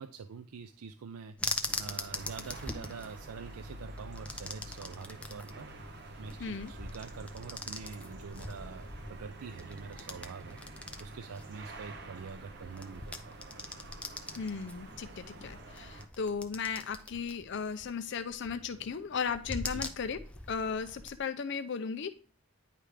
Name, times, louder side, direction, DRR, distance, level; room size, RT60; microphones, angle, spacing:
voice 1, 0.0-5.7 6.2-10.6 11.0-13.4 19.7-19.8, right 5 dB, 85° right, 10 dB, 0.4 m, -45 dB
sound 1, 1.4-21.2, left 2 dB, 5° left, 0.5 m, -43 dB
sound 2, 1.6-16.1, right 1 dB, 50° right, 0.8 m, -48 dB
voice 2, 6.4-6.7 14.4-20.2 20.5-22.2, left 6 dB, 55° left, 10 dB, 0.5 m, -36 dB
9.8 x 3.4 x 4.9 m, 0.41 s
head